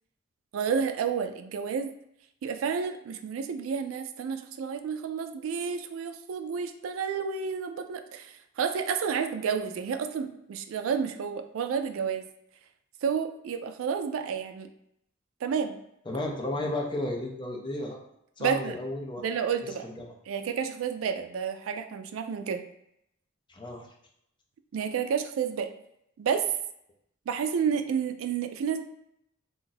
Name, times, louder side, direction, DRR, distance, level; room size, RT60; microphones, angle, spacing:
voice 1, 0.5-1.9 2.4-12.3 13.0-14.7 15.4-15.8 18.4-18.8 19.2-19.8 20.3-22.6 24.7-25.7 26.2-26.4 27.3-28.8, right 6 dB, 75° right, 8 dB, 0.3 m, -30 dB
voice 2, 16.1-18.0 18.4-19.2 19.8-20.1 23.5-23.9, left 1 dB, 25° left, 0 dB, 0.5 m, -33 dB
2.6 x 2.4 x 3.9 m, 0.77 s
head